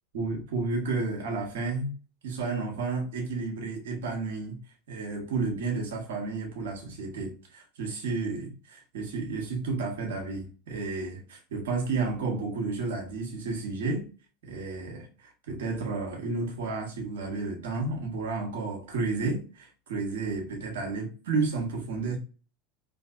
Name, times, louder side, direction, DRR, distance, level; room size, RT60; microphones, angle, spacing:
voice 1, 0.1-1.9 2.2-4.6 4.9-14.1 14.4-22.2, right 3 dB, 80° right, 1.2 m, -32 dB
3.2 x 2.8 x 2.5 m
hypercardioid pair, 100°, 0 cm